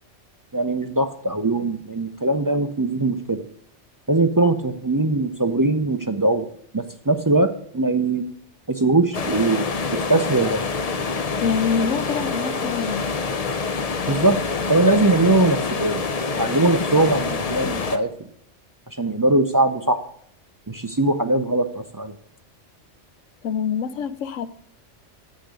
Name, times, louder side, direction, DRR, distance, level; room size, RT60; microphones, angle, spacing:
voice 1, 0.5-3.4 4.1-6.5 6.7-8.2 8.7-9.7 10.1-10.6 14.1-14.4 14.7-16.1 16.4-18.1 19.0-20.0 20.7-22.1, right 2 dB, 30° right, 0.3 m, -21 dB
sound 1, 9.1-18.0, left 4 dB, 40° left, 0.6 m, -26 dB
voice 2, 11.4-13.1 23.4-24.5, left 6 dB, 85° left, 1.1 m, -25 dB
8.4 x 6.5 x 8.2 m
omnidirectional pair, 1.3 m